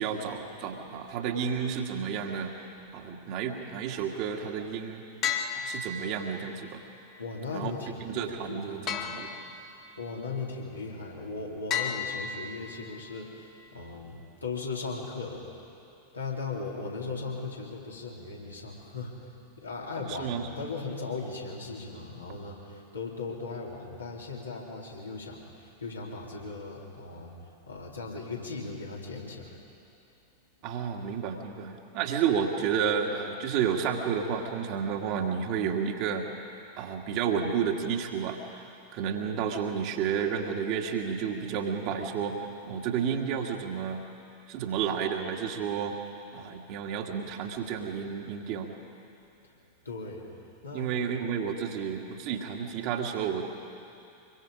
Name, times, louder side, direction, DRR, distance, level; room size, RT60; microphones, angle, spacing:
voice 1, 0.0-2.7 2.9-5.0 5.5-6.8 7.5-7.7 8.0-9.3 20.1-20.4 30.6-36.3 36.8-42.4 42.7-44.1 44.5-46.0 46.3-48.7 50.7-53.4, right 7 dB, 45° right, 2 dB, 2.0 m, -31 dB
sound 1, 5.2-6.5 8.9-9.9 11.7-12.9, left 7 dB, 35° left, 1.5 m, -33 dB
voice 2, 7.2-8.8 10.0-15.5 16.1-27.3 27.7-29.6 49.8-50.3 50.6-50.9, left 4 dB, 80° left, -4 dB, 3.8 m, -38 dB
25.0 x 22.5 x 5.1 m, 2.7 s
figure-of-eight pair, 90°, 0 cm